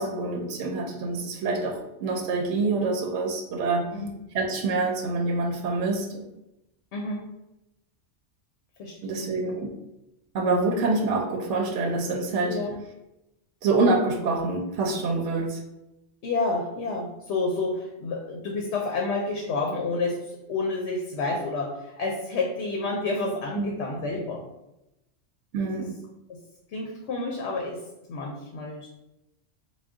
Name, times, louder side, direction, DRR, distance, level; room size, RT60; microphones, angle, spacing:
voice 1, 0.0-3.8 4.3-6.2 9.0-9.7 10.3-12.5 13.6-15.6 23.6-23.7 25.5-25.9, right 3 dB, 85° right, 3 dB, 0.9 m, -26 dB
voice 2, 6.9-7.2 8.8-9.3 12.4-12.7 16.2-24.4 25.6-25.9 26.3-26.4 26.7-27.8 28.1-28.9, left 3 dB, 75° left, 0 dB, 0.9 m, -29 dB
3.7 x 2.3 x 3.5 m, 0.91 s
omnidirectional pair, 1.2 m